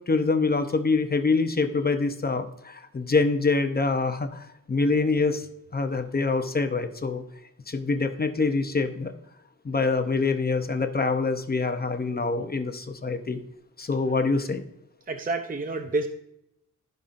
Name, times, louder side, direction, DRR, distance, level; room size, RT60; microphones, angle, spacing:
voice 1, 0.1-5.5 5.7-7.2 7.7-9.1 9.6-13.4 13.8-14.6, left 3 dB, 30° left, 7 dB, 0.7 m, -25 dB
voice 2, 15.1-16.1, right 3 dB, 25° right, 6 dB, 0.6 m, -28 dB
15.5 x 5.5 x 2.5 m, 0.80 s
wide cardioid pair, 175°, 34 cm